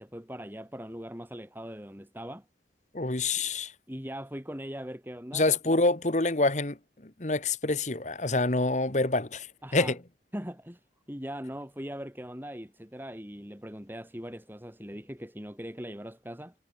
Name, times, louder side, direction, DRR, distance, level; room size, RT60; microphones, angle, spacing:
voice 1, 0.0-2.4 3.9-5.5 9.6-9.9 10.3-10.8 11.1-16.5, equal, 10° right, 5.4 m, -40 dB
voice 2, 2.9-3.7 5.3-10.0, left 2 dB, 40° left, 1.4 m, -27 dB
head